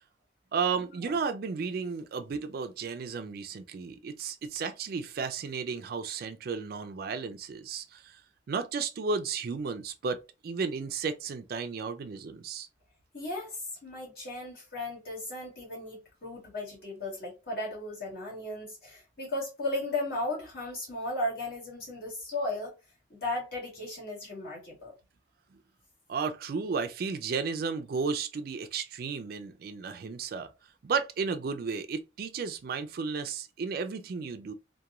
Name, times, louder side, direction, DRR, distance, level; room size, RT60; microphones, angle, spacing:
voice 1, 0.5-8.2 8.5-12.7 25.5-25.6 26.1-30.5 30.8-34.5, right 5 dB, 50° right, 0.3 m, -33 dB
voice 2, 13.1-22.7 23.1-24.9, left 2 dB, 55° left, 1.5 m, -36 dB
2.9 x 2.2 x 2.3 m
head